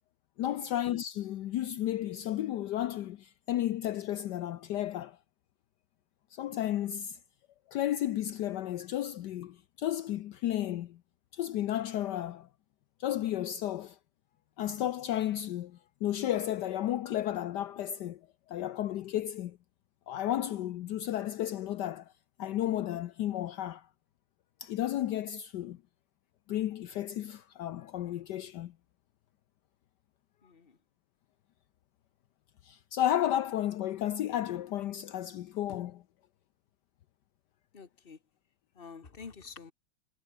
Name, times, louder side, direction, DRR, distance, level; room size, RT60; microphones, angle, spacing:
voice 1, 0.4-5.2 6.3-7.2 7.7-11.0 11.3-12.5 13.0-14.0 14.6-18.2 18.5-19.6 20.1-22.1 22.4-23.9 24.6-25.8 26.5-28.7 32.6-36.0, left 12 dB, 70° left, 1.3 m, -33 dB
voice 2, 30.4-30.7 37.7-38.2 38.8-39.7, left 5 dB, 30° left, 1.8 m, -48 dB
omnidirectional pair, 2.0 m